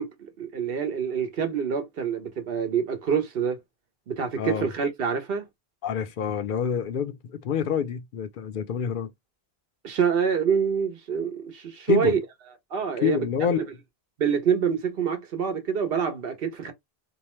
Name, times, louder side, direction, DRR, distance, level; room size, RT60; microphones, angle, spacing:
voice 1, 0.0-3.6 4.1-5.5 9.8-12.2 12.7-13.2 13.6-13.7 14.2-16.7, right 7 dB, 70° right, 0.9 m, -26 dB
voice 2, 4.4-4.7 5.8-9.1 11.9-12.2 13.0-13.7, left 7 dB, 60° left, 0.6 m, -27 dB
2.7 x 2.0 x 3.0 m
omnidirectional pair, 1.0 m